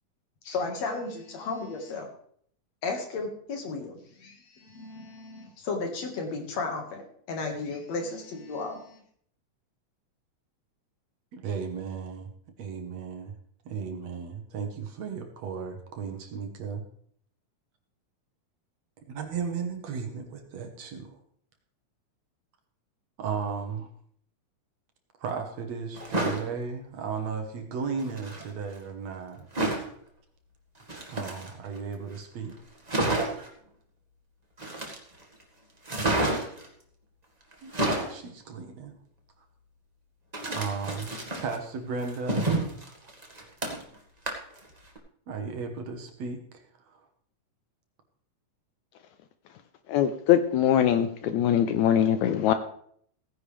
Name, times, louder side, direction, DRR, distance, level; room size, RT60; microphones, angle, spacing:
voice 1, 0.4-2.1 2.8-3.9 4.2-9.0, left 3 dB, 60° left, 3 dB, 2.8 m, -34 dB
voice 2, 11.3-12.3 12.6-13.3 13.7-16.8 19.1-21.2 23.2-23.9 25.2-29.5 31.1-32.6 37.6-39.0 40.5-43.1 43.7-43.8 45.3-47.0, right 5 dB, 60° right, 4 dB, 2.3 m, -35 dB
sound 1, 25.9-26.4 28.0-28.5 29.5-29.9 30.8-31.8 32.2-32.3 32.5-32.6 32.9-33.5 34.6-35.2 35.9-36.7 37.5-38.2 40.3-41.6 42.0-44.0 44.3-44.6 45.0-45.1, right 2 dB, 20° right, 1.2 m, -29 dB
voice 3, 49.9-52.5, left 10 dB, 80° left, 10 dB, 1.9 m, -22 dB
16.5 x 10.0 x 3.4 m, 0.62 s
omnidirectional pair, 3.6 m